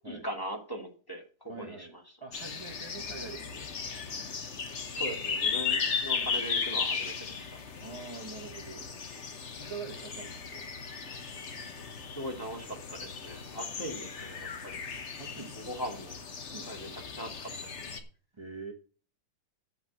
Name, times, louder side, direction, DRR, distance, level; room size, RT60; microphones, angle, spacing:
voice 1, 0.0-2.0 4.9-7.6 12.1-14.8 15.6-16.2 16.7-18.0, equal, 10° left, 2 dB, 1.8 m, -40 dB
voice 2, 1.5-1.9 2.2-3.7 6.1-6.3 7.8-8.9 9.6-10.7 13.8-13.9 15.2-15.5 16.5-16.7 18.3-18.7, right 4 dB, 20° right, 2 dB, 0.8 m, -44 dB
sound 1, 2.3-18.0, left 5 dB, 40° left, 1.2 m, -36 dB
8.4 x 6.0 x 7.6 m, 0.40 s
omnidirectional pair, 2.1 m